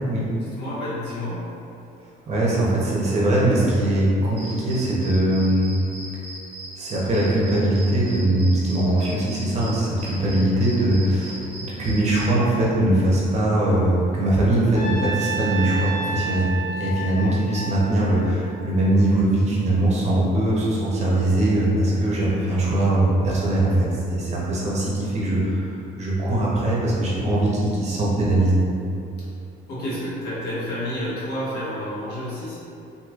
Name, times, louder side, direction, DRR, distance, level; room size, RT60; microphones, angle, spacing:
voice 1, 0.4-1.5 29.7-32.6, left 1 dB, 80° left, -9 dB, 1.1 m, -30 dB
voice 2, 2.3-5.7 6.8-28.6, right 1 dB, 40° right, -6 dB, 0.8 m, -21 dB
sound 1, 4.4-12.2, right 2 dB, 10° right, 1.0 m, -39 dB
Trumpet, 14.8-19.0, right 3 dB, 55° left, 0.5 m, -31 dB
3.0 x 2.7 x 2.4 m, 2.7 s
cardioid pair, 110°, 17 cm